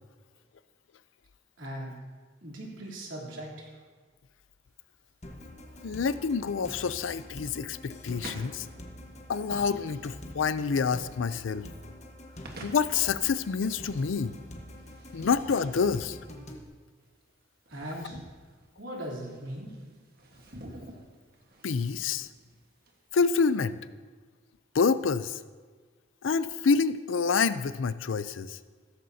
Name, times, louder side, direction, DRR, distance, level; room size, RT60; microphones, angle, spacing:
voice 1, 1.6-1.9 2.4-3.8 17.7-18.2 18.8-19.8, equal, 85° right, -3 dB, 3.2 m, -39 dB
sound 1, 4.7-23.9, right 1 dB, 55° right, 1.5 m, -51 dB
sound 2, 5.2-16.6, left 1 dB, 40° left, 1.3 m, -45 dB
voice 2, 5.8-8.7 9.3-11.7 12.6-14.3 15.1-16.2 21.6-22.3 23.1-23.8 24.7-25.4 26.2-28.6, left 5 dB, 90° left, 14 dB, 0.5 m, -27 dB
15.0 x 14.0 x 2.8 m, 1.4 s
head